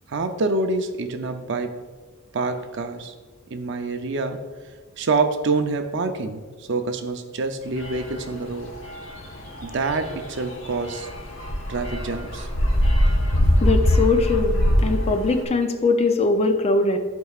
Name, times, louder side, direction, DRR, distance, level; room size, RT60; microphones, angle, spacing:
voice 1, 0.1-1.7 2.3-3.1 3.5-4.4 5.0-6.4 6.7-8.7 9.6-11.1 11.7-12.5, right 3 dB, 55° right, 7 dB, 0.5 m, -26 dB
sound 1, 7.8-15.4, equal, 60° left, 1.2 m, -23 dB
voice 2, 13.6-17.0, left 3 dB, 30° left, 6 dB, 0.5 m, -21 dB
11.5 x 4.6 x 2.4 m, 1.4 s
head